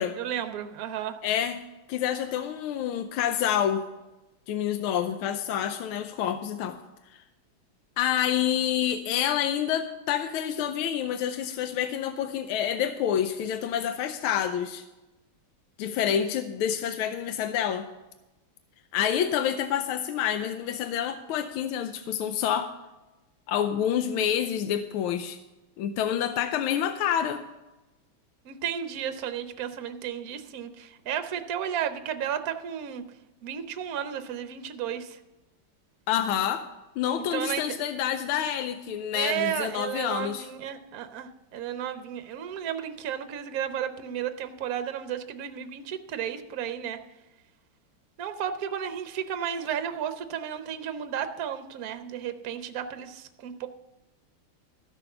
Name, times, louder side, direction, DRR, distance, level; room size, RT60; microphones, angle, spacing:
voice 1, 0.2-1.2 28.4-33.0 33.4-35.2 37.3-37.8 39.1-47.0 48.2-53.7, right 9 dB, 60° right, 9 dB, 1.0 m, -33 dB
voice 2, 1.2-1.6 1.9-3.9 4.5-6.8 8.0-14.8 15.8-17.9 18.9-22.7 23.5-25.4 25.8-27.4 36.1-36.7 37.0-40.5, left 9 dB, 90° left, 9 dB, 1.5 m, -28 dB
13.5 x 6.3 x 6.7 m, 1.0 s
omnidirectional pair, 2.3 m